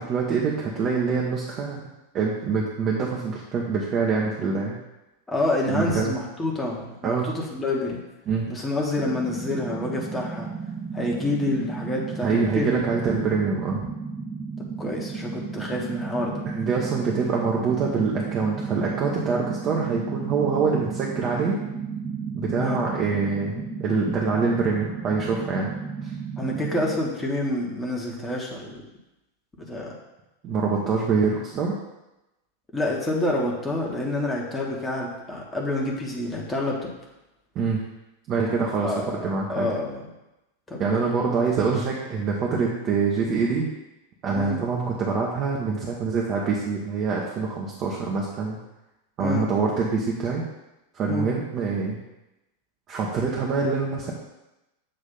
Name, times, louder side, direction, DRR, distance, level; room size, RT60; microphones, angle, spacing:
voice 1, 0.0-1.9 2.1-4.7 5.7-6.1 7.0-7.3 8.3-8.4 12.2-13.9 16.4-21.6 22.3-25.7 26.0-26.1 30.4-31.7 37.5-37.8 38.3-39.7 40.8-43.7 44.2-48.6 49.2-50.4 50.9-52.0 52.9-54.1, right 5 dB, 35° right, -3 dB, 1.0 m, -25 dB
voice 2, 5.3-8.0 8.5-10.5 10.9-12.8 13.1-13.2 14.8-16.4 22.5-22.8 26.4-28.8 29.6-29.9 32.7-36.9 38.8-40.0 40.7-41.0 44.3-44.6 49.2-49.5 51.1-51.3, left 2 dB, 10° left, -2 dB, 1.3 m, -28 dB
sound 1, 8.9-27.0, right 5 dB, 15° right, 0.6 m, -33 dB
7.6 x 3.1 x 5.4 m, 0.96 s
figure-of-eight pair, 90°, 0 cm